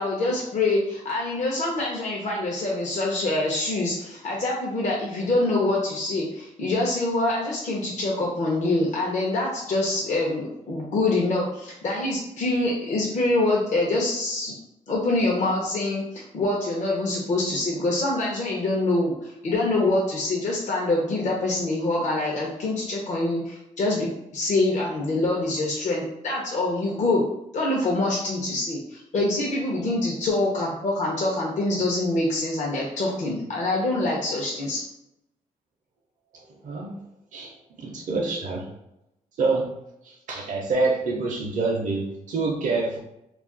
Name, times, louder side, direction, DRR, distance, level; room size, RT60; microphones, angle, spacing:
voice 1, 0.0-14.5 14.9-24.1 24.3-27.2 27.5-34.8, left 2 dB, 60° left, -3 dB, 0.6 m, -25 dB
voice 2, 36.6-37.0 37.3-38.7 39.4-39.7 40.0-43.0, right 3 dB, 65° right, -2 dB, 0.5 m, -26 dB
2.4 x 2.3 x 3.7 m, 0.85 s
cardioid pair, 80°, 14 cm